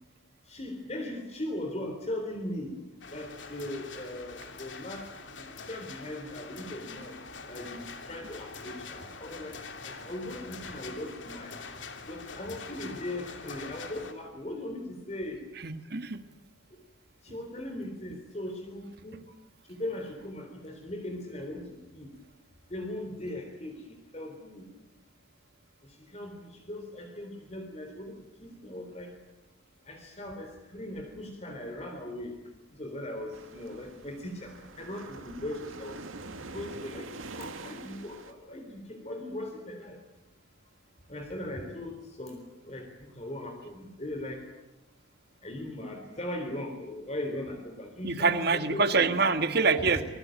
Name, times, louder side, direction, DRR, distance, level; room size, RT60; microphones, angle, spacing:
voice 1, 0.5-2.8 3.1-5.1 5.3-7.2 7.5-9.5 9.8-11.6 12.1-15.4 17.2-19.2 19.7-22.1 22.7-23.8 24.1-24.7 26.1-29.1 29.9-32.3 32.8-36.0 36.5-37.1 37.4-40.0 41.1-42.4 42.6-44.4 45.4-49.1 49.9-50.0, left 1 dB, 30° left, 3 dB, 3.7 m, -39 dB
sound 1, 3.0-14.1, left 4 dB, 65° left, 3.0 m, -44 dB
voice 2, 15.6-16.2 48.0-50.0, right 4 dB, 50° right, 9 dB, 1.7 m, -25 dB
sound 2, 33.3-38.3, right 3 dB, 85° right, 2.3 m, -44 dB
27.0 x 21.5 x 9.2 m, 1.0 s
head